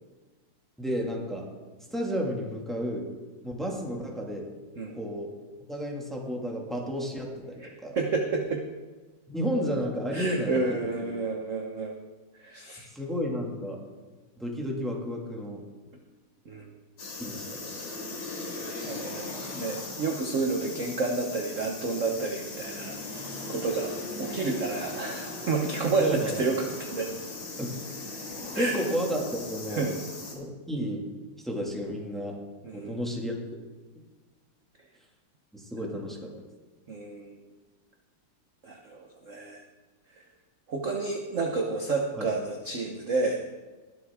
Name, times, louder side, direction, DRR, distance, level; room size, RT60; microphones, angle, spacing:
voice 1, 0.8-1.5 1.9-3.1 3.4-4.5 5.0-5.3 5.7-8.0 9.3-11.1 12.9-13.8 14.4-15.6 17.2-17.6 26.0-26.4 27.6-27.7 28.6-29.9 30.3-31.0 31.4-32.3 32.7-33.4 35.5-36.3 42.2-42.3, equal, ahead, -1 dB, 1.9 m, -32 dB
voice 2, 7.9-8.6 10.1-12.0 12.4-12.9 16.5-16.7 18.9-23.9 24.2-27.1 28.5-28.8 29.7-29.9 32.6-33.0 36.9-37.4 38.6-39.6 40.7-43.4, right 3 dB, 45° right, 2 dB, 1.2 m, -30 dB
sound 1, 17.0-30.3, left 2 dB, 75° left, 3.1 m, -38 dB
21.0 x 7.9 x 3.6 m, 1.3 s
omnidirectional pair, 2.4 m